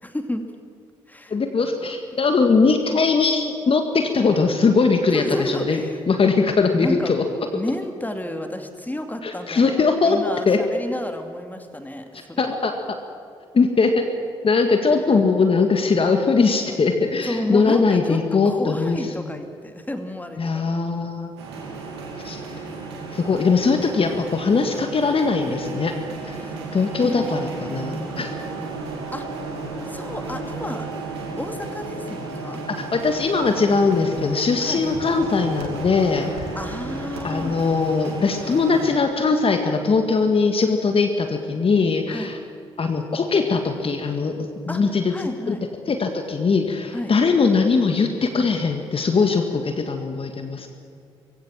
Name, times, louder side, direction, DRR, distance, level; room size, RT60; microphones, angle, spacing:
voice 1, 0.0-0.4 1.1-1.3 5.1-6.0 6.7-7.2 7.5-12.6 14.8-15.2 17.2-18.2 18.4-20.4 20.7-20.8 22.3-22.8 26.4-26.5 27.0-27.3 29.1-29.3 29.9-30.9 31.4-32.6 34.6-34.8 36.6-37.6 42.1-42.4 44.7-44.8 45.1-45.6 46.9-47.1, left 1 dB, 10° left, 6 dB, 2.5 m, -31 dB
voice 2, 1.3-5.8 6.1-7.2 9.2-10.2 10.5-10.6 12.4-12.8 13.5-14.0 14.4-19.4 20.4-21.3 22.1-22.4 23.1-26.0 26.2-28.4 32.7-36.5 37.2-42.4 42.8-45.1 45.5-45.6 45.9-50.7, left 4 dB, 45° left, 5 dB, 1.8 m, -21 dB
sound 1, 21.4-39.0, right 3 dB, 85° right, 2.8 m, -33 dB
22.0 x 16.0 x 7.4 m, 2.4 s
hypercardioid pair, 40°, 14 cm